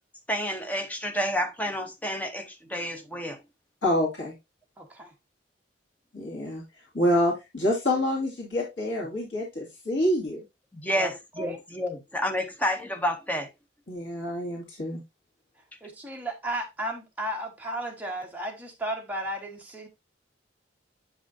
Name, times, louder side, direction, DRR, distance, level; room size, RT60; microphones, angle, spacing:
voice 1, 0.3-3.4 10.7-13.5, equal, 10° left, 0.7 m, -30 dB
voice 2, 3.8-4.3 6.1-10.4 13.9-15.0, left 1 dB, 80° left, 2.2 m, -27 dB
voice 3, 4.8-5.1 10.9-11.1 11.4-11.6 15.8-19.9, right 1 dB, 10° right, 1.2 m, -34 dB
8.1 x 5.3 x 2.7 m
head